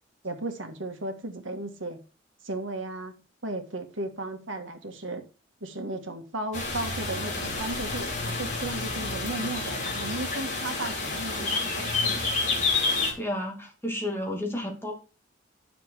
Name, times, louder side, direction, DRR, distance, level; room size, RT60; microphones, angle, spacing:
voice 1, 0.2-2.0 2.4-3.1 3.4-5.2 5.6-12.2, right 2 dB, 85° right, 1.9 m, -35 dB
sound 1, 6.5-13.1, left 3 dB, 40° left, 3.4 m, -29 dB
voice 2, 13.2-14.9, left 1 dB, 15° left, 2.6 m, -31 dB
9.6 x 7.0 x 4.8 m
head